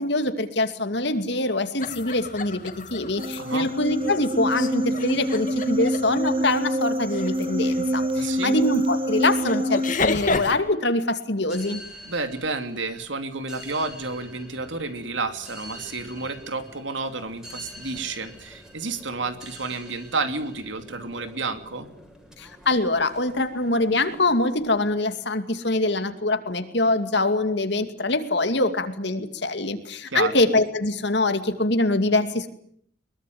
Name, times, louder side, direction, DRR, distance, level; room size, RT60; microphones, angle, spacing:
voice 1, 0.0-11.8 22.4-32.5, left 2 dB, 60° left, 8 dB, 2.5 m, -24 dB
sound 1, 1.8-10.5, left 3 dB, 40° left, 2.7 m, -33 dB
sound 2, 3.2-10.0, right 1 dB, 25° right, 1.4 m, -26 dB
voice 2, 3.4-3.7 8.2-8.5 12.0-21.9 30.1-30.3, right 3 dB, 70° right, 8 dB, 2.9 m, -30 dB
sound 3, 11.4-24.9, equal, 5° right, 4.9 m, -46 dB
23.5 x 22.5 x 9.5 m, 0.65 s
head